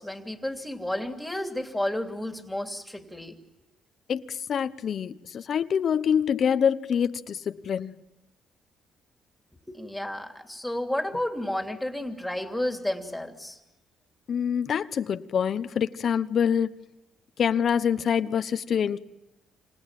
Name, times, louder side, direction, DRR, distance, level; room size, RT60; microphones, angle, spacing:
voice 1, 0.0-3.4 9.7-13.6, left 1 dB, 5° left, 2.9 m, -31 dB
voice 2, 4.1-8.0 14.3-16.7 17.4-19.0, left 7 dB, 55° left, 0.9 m, -26 dB
28.0 x 26.5 x 7.5 m
cardioid pair, 105°, 0 cm